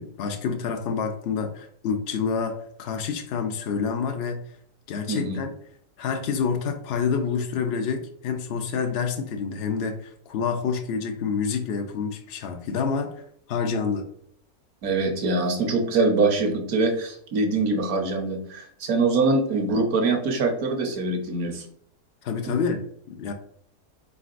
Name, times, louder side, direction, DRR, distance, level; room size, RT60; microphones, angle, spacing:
voice 1, 0.0-4.4 4.9-5.5 6.0-13.2 13.5-14.1 22.2-22.8 23.1-23.3, left 6 dB, 70° left, 4 dB, 0.6 m, -28 dB
voice 2, 14.8-21.6 22.4-22.5, right 3 dB, 70° right, 3 dB, 1.3 m, -24 dB
4.1 x 3.8 x 2.4 m, 0.66 s
omnidirectional pair, 1.6 m